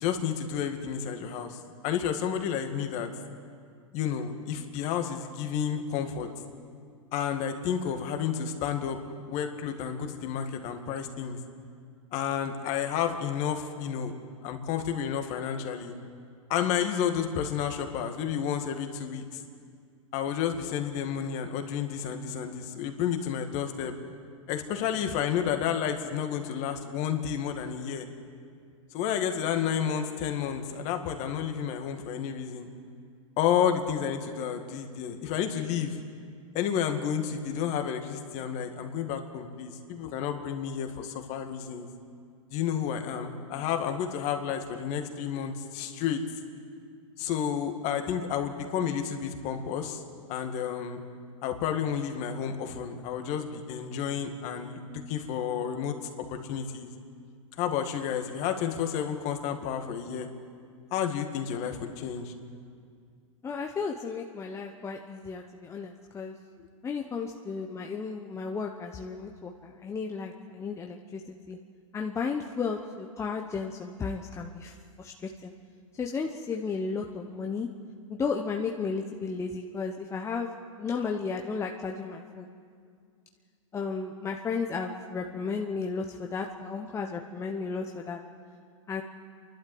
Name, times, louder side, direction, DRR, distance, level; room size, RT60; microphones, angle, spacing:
voice 1, 0.0-3.1 3.9-6.3 7.1-9.0 9.3-11.4 12.1-14.1 14.4-15.9 16.5-19.4 20.1-23.9 24.5-28.1 28.9-32.7 33.4-36.0 36.5-41.9 42.5-46.2 47.2-50.0 50.3-51.0 51.4-56.0 56.3-56.9 57.6-60.3 60.9-62.3, left 8 dB, 40° left, 5 dB, 2.1 m, -31 dB
voice 2, 63.4-66.4 66.8-71.2 71.5-71.6 71.9-75.5 76.0-77.7 78.1-80.5 80.8-82.5 83.7-88.2 88.9-89.0, left 5 dB, 15° left, 2 dB, 1.0 m, -34 dB
29.0 x 12.0 x 7.8 m, 2.2 s
hypercardioid pair, 120°, 17 cm